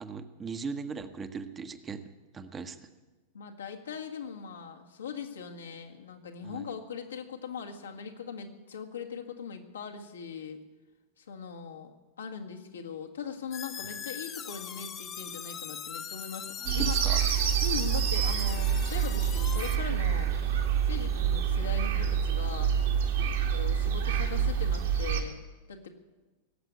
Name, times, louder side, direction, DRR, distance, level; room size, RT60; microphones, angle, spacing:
voice 1, 0.0-2.9 6.4-6.7 16.6-17.2 23.2-23.4, right 5 dB, 20° right, 8 dB, 1.1 m, -39 dB
voice 2, 3.3-10.6 11.2-11.9 12.2-16.9 17.6-20.3 20.8-22.7 23.5-25.4 25.7-25.9, left 6 dB, 70° left, 1 dB, 1.8 m, -40 dB
sound 1, 13.5-19.8, left 8 dB, 30° left, 1.1 m, -41 dB
sound 2, 16.6-25.2, right 8 dB, 60° right, 2.1 m, -27 dB
18.5 x 8.0 x 9.6 m, 1.2 s
figure-of-eight pair, 90°, 0 cm